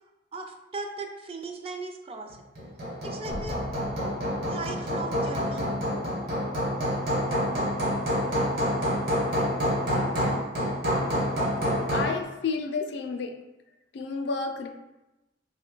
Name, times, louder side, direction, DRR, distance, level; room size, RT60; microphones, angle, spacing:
voice 1, 0.3-2.4 3.0-3.6 4.5-5.7, right 3 dB, 30° right, 3 dB, 0.3 m, -37 dB
Hammer, 2.6-12.2, equal, 50° right, 1.0 m, -27 dB
sound 1, 3.3-5.9, left 1 dB, 85° right, 0.7 m, -42 dB
voice 2, 11.9-13.3 13.9-14.7, left 4 dB, 65° left, 4 dB, 0.4 m, -30 dB
2.9 x 2.2 x 3.8 m, 0.99 s
head